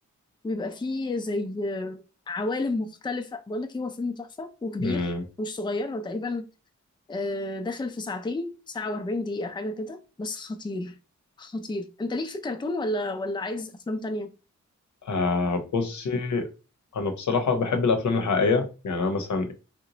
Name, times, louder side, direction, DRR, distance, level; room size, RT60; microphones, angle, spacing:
voice 1, 0.4-5.1 5.4-6.5 7.1-10.9 11.4-14.3, left 2 dB, 15° left, 0.4 m, -31 dB
voice 2, 4.8-5.2 15.0-16.5 16.9-19.5, left 4 dB, 75° left, 0.8 m, -25 dB
2.9 x 2.1 x 3.8 m
wide cardioid pair, 100°, 29 cm